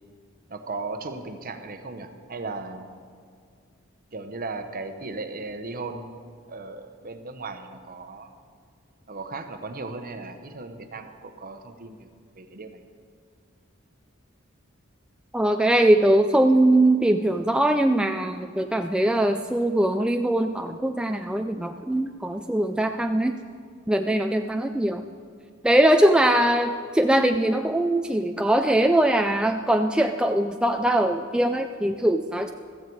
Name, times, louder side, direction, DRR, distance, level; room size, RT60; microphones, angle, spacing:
voice 1, 0.5-2.9 4.1-8.3 9.1-12.1 12.3-12.8, right 3 dB, 45° right, 8 dB, 1.0 m, -36 dB
voice 2, 15.3-23.4 23.9-25.0 25.6-32.5, right 1 dB, 5° right, 5 dB, 0.3 m, -21 dB
15.5 x 14.0 x 4.7 m, 2.1 s
head